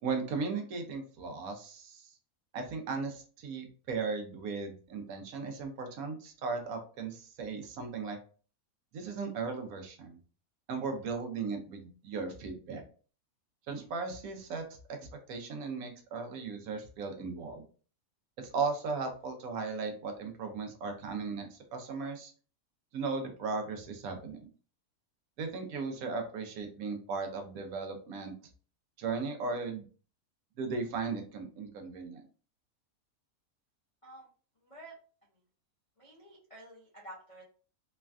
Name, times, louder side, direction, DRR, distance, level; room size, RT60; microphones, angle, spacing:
voice 1, 0.0-2.1 2.5-8.2 8.9-10.2 10.7-12.8 13.7-15.0 15.3-17.6 18.4-22.3 22.9-24.5 25.4-28.3 29.0-29.8 30.6-32.2, right 4 dB, 75° right, 5 dB, 1.0 m, -37 dB
voice 2, 34.6-35.0 36.0-37.4, right 1 dB, 45° left, -7 dB, 0.4 m, -50 dB
3.1 x 2.2 x 2.4 m, 0.39 s
omnidirectional pair, 1.6 m